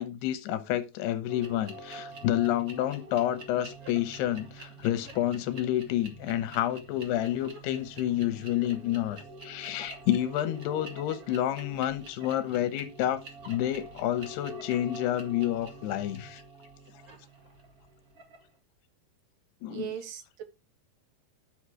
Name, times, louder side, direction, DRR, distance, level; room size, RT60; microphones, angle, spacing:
voice 1, 0.0-16.4 19.6-19.9, left 12 dB, 85° left, 3.1 m, -29 dB
sound 1, 1.3-18.5, right 1 dB, 35° right, 1.6 m, -46 dB
voice 2, 19.7-20.4, right 9 dB, 70° right, 2.4 m, -38 dB
11.5 x 6.3 x 4.8 m
omnidirectional pair, 4.7 m